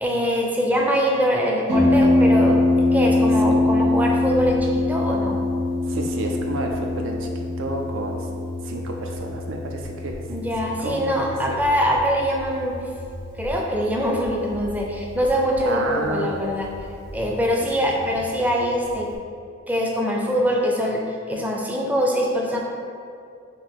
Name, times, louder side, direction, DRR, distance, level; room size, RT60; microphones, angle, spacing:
voice 1, 0.0-2.6 2.9-5.4 10.3-12.8 13.4-16.7 17.1-19.1 19.7-21.0 21.3-22.6, equal, 10° right, -1 dB, 0.4 m, -23 dB
Harp, 1.7-19.2, left 2 dB, 90° right, 1.0 m, -24 dB
voice 2, 5.9-7.3 7.6-8.3 8.6-10.2 10.8-11.1 11.5-11.6 15.6-16.3, right 2 dB, 70° right, 1 dB, 0.4 m, -30 dB
3.7 x 2.7 x 4.6 m, 2.3 s
head